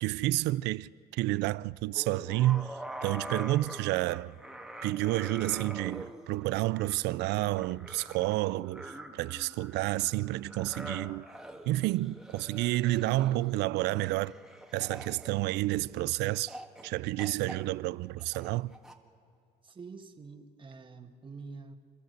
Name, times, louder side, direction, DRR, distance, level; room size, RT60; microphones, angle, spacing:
voice 1, 0.0-4.4 4.8-11.2 11.6-14.3 14.7-16.6 16.8-18.8, right 17 dB, 85° right, 0.4 m, -30 dB
sound 1, 1.9-16.0 16.5-16.9 17.2-18.9, right 1 dB, ahead, 1.6 m, -45 dB
voice 2, 19.6-21.8, right 4 dB, 30° right, 1.7 m, -46 dB
29.0 x 13.0 x 7.9 m
cardioid pair, 110°, 17 cm